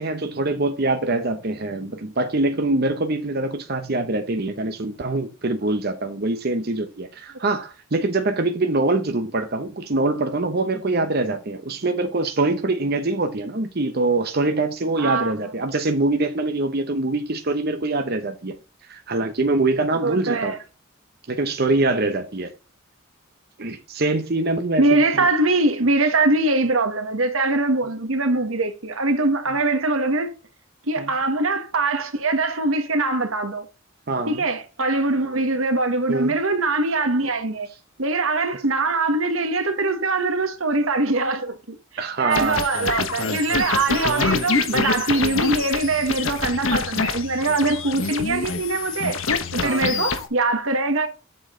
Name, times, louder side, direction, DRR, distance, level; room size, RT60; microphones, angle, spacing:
voice 1, 0.0-18.6 18.9-20.6 21.3-22.5 23.6-25.3 31.0-31.1 34.1-34.4 36.1-36.4 42.0-42.6 49.6-49.9, right 2 dB, 50° right, 0.9 m, -24 dB
voice 2, 15.0-15.3 20.0-20.6 24.8-30.3 30.9-33.7 34.3-37.7 38.0-49.2 49.5-51.1, right 2 dB, 85° right, 1.5 m, -22 dB
sound 1, 42.3-50.3, left 4 dB, 80° left, 1.2 m, -26 dB
7.7 x 6.3 x 3.8 m
head